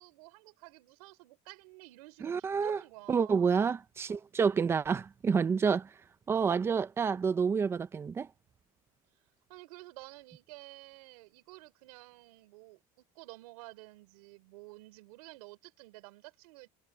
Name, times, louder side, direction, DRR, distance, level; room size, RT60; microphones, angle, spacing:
voice 1, 0.0-3.5 9.5-16.7, right 22 dB, 80° right, 4.8 m, -51 dB
voice 2, 2.2-2.8 3.1-5.9 6.3-8.3, right 6 dB, 15° right, 0.5 m, -28 dB
cardioid pair, 175°, 19 cm